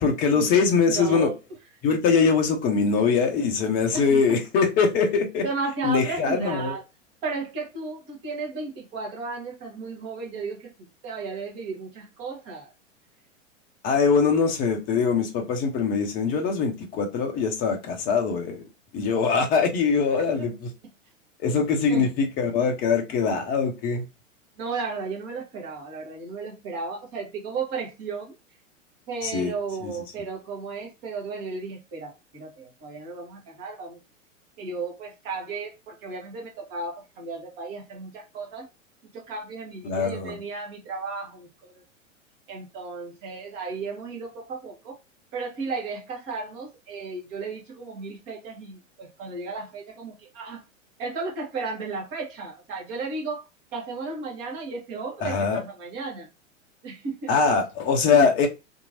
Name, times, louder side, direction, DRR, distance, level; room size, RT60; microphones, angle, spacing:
voice 1, 0.0-1.3 1.8-5.4 5.8-6.7 13.8-18.6 18.9-20.7 21.4-24.0 29.2-29.5 39.8-40.3 55.2-55.6 57.3-58.5, left 5 dB, 25° left, 0.6 m, -22 dB
voice 2, 0.9-1.4 3.9-4.3 5.4-6.8 7.2-10.7 11.0-12.7 20.4-20.5 21.9-22.1 24.6-28.3 29.1-34.0 34.6-38.7 39.1-41.8 42.5-45.0 45.3-50.6 51.0-56.3 56.8-57.4 58.1-58.5, right 4 dB, 30° right, 1.1 m, -34 dB
2.8 x 2.6 x 2.7 m
figure-of-eight pair, 95°, 38 cm